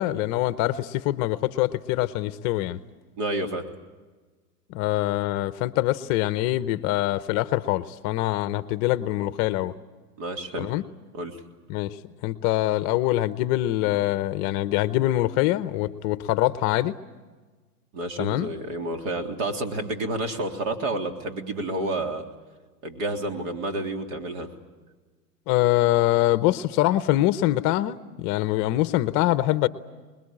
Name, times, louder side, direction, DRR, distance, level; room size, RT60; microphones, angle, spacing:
voice 1, 0.0-2.8 4.7-9.7 10.6-10.8 11.7-12.0 12.2-17.0 18.2-18.5 25.5-29.7, left 15 dB, 35° left, 14 dB, 0.8 m, -24 dB
voice 2, 3.2-3.6 10.2-10.7 11.1-11.4 17.9-22.2 22.8-24.5, right 2 dB, 55° right, 5 dB, 3.5 m, -30 dB
25.0 x 21.0 x 8.7 m, 1.3 s
hypercardioid pair, 125°, 47 cm